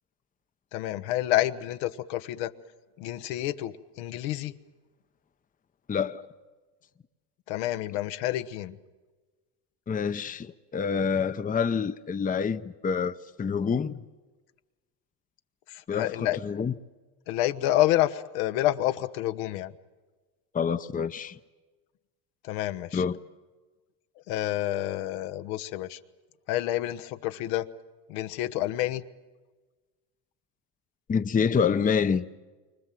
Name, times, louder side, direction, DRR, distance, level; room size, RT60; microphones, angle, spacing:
voice 1, 0.7-2.5 3.0-4.5 7.5-8.8 15.7-16.4 17.3-19.7 22.4-23.0 24.3-26.0 26.5-27.7 28.1-29.0, left 14 dB, 75° left, 1.4 m, -28 dB
voice 2, 5.9-6.3 9.9-14.0 15.9-16.7 20.5-21.4 22.9-23.2 31.1-32.4, left 6 dB, 20° left, 0.8 m, -27 dB
29.0 x 24.5 x 7.6 m
supercardioid pair, 100°, 45 cm